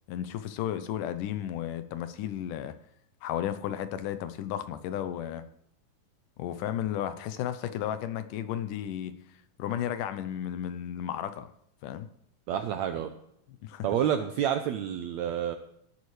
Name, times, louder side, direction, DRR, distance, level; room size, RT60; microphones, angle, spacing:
voice 1, 0.1-2.8 3.2-5.4 6.4-9.1 9.6-11.5 11.8-12.1 13.6-13.9, left 10 dB, 75° left, 11 dB, 2.2 m, -33 dB
voice 2, 12.5-13.1 13.8-15.6, right 9 dB, 80° right, 7 dB, 1.6 m, -29 dB
18.0 x 11.0 x 3.2 m, 0.75 s
omnidirectional pair, 4.0 m